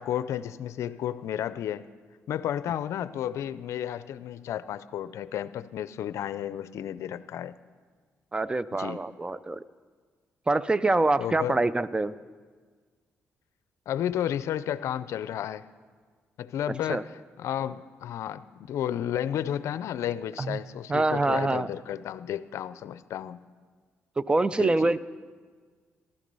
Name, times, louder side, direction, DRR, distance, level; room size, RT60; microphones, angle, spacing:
voice 1, 0.0-1.8 2.3-7.6 8.8-9.0 11.2-11.6 13.9-15.6 16.4-17.0 17.4-18.4 18.7-23.4 24.6-25.0, left 10 dB, 80° left, 15 dB, 0.5 m, -32 dB
voice 2, 8.3-9.6 10.5-12.1 16.9-17.0 20.4-20.6 20.9-21.7 24.2-25.0, right 2 dB, 20° right, 17 dB, 0.5 m, -25 dB
14.5 x 13.0 x 5.4 m, 1.6 s
cardioid pair, 80°, 5 cm